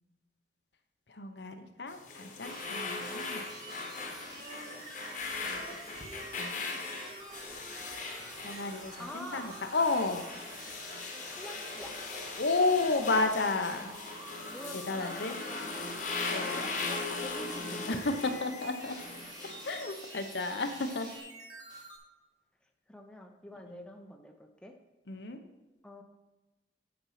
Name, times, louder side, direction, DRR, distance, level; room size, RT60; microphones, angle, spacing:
voice 1, 1.1-3.5 6.4-6.6 7.8-8.0 8.4-10.3 12.4-14.0 14.9-15.3 16.3-16.7 17.9-18.1 18.4-19.0 19.6-21.1 23.7-23.8 25.1-25.4, left 3 dB, 80° left, 6 dB, 1.0 m, -32 dB
sound 1, 1.9-21.2, left 3 dB, 45° left, 1.2 m, -40 dB
sound 2, 2.4-22.0, right 2 dB, 25° right, 1.9 m, -48 dB
Female singing, 4.2-11.2 11.8-11.9, right 2 dB, 40° right, 1.5 m, -53 dB
voice 2, 5.4-6.0 9.0-9.5 11.4-12.0 14.5-16.0 16.3-18.0 22.9-24.8 25.8-26.0, equal, 5° left, 3 dB, 0.8 m, -47 dB
8.8 x 5.3 x 5.9 m, 1.1 s
head